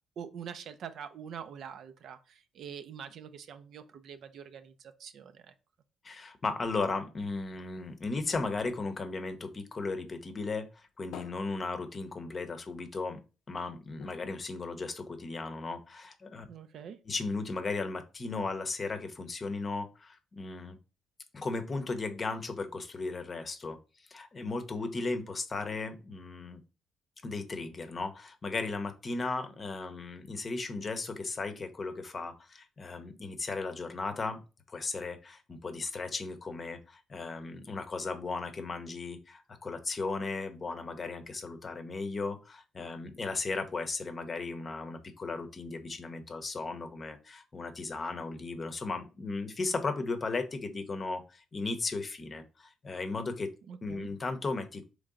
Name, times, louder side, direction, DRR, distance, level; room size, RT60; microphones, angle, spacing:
voice 1, 0.2-5.5 16.5-17.0 53.6-54.1, right 7 dB, 70° right, 9 dB, 0.5 m, -45 dB
voice 2, 6.0-13.2 13.5-16.5 17.1-20.8 21.3-23.8 24.1-26.6 27.2-34.4 34.7-53.5 53.8-54.8, left 3 dB, 35° left, 8 dB, 0.7 m, -36 dB
sound 1, 7.4-10.0 10.4-12.6 13.0-13.1 13.4-13.5 14.0-15.5 16.1-16.2, left 8 dB, 85° left, 0.4 m, -54 dB
3.7 x 3.3 x 3.7 m, 0.32 s
cardioid pair, 90°, 0 cm